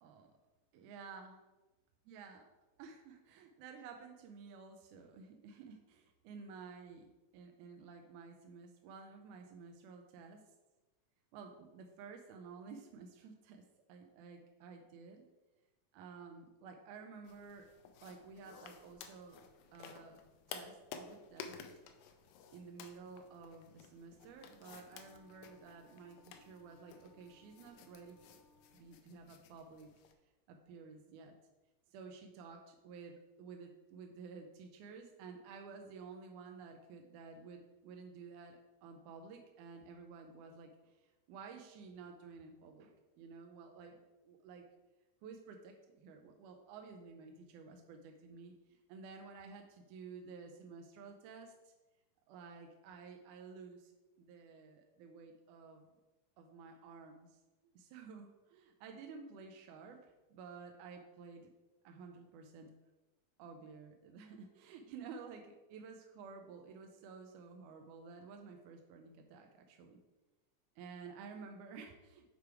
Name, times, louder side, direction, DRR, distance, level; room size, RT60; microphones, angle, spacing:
voice 1, 0.7-1.4 2.1-2.4 2.8-7.1 7.3-10.4 11.3-13.6 13.9-15.2 15.9-17.7 18.0-19.4 19.7-20.2 20.5-21.6 22.5-28.2 28.7-29.9 30.5-31.3 31.9-42.9 43.2-44.7 45.2-51.7 52.3-53.9 54.2-55.8 56.4-57.4 57.6-61.5 61.8-62.7 63.4-70.0 70.8-72.3, right 5 dB, 80° right, 3 dB, 2.0 m, -52 dB
sound 1, 17.2-30.1, left 7 dB, 85° left, 2.3 m, -54 dB
Wind instrument woodwind instrument, 24.9-29.1, left 2 dB, 50° left, 1.5 m, -68 dB
6.8 x 4.7 x 4.6 m, 1.1 s
omnidirectional pair, 3.8 m